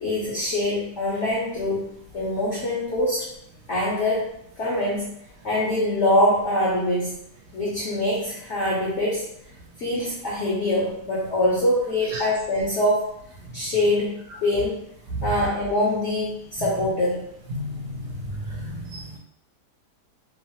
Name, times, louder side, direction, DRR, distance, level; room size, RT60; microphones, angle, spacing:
voice 1, 0.0-1.9 2.1-3.3 3.7-4.3 4.6-5.1 5.4-7.2 7.5-9.2 9.8-13.1 13.5-14.8 15.2-17.3, left 1 dB, 60° left, -6 dB, 0.7 m, -24 dB
voice 2, 18.0-19.2, equal, 75° right, -3 dB, 1.1 m, -33 dB
3.0 x 2.0 x 2.7 m, 0.76 s
omnidirectional pair, 1.8 m